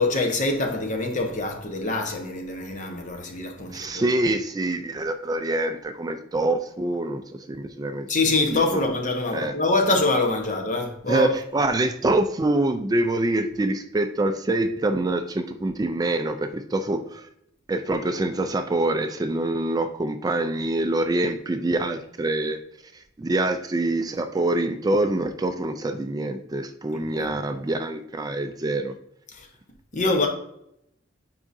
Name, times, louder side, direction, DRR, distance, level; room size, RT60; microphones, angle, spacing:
voice 1, 0.0-4.0 8.1-11.3 27.1-27.3 29.3-29.5 29.9-30.3, left 2 dB, 40° left, 1.0 m, -24 dB
voice 2, 3.7-7.2 7.5-8.1 8.5-8.8 9.3-9.5 11.1-17.3 17.7-22.6 23.2-28.9, right 2 dB, 20° right, 0.4 m, -25 dB
7.5 x 4.8 x 2.6 m
head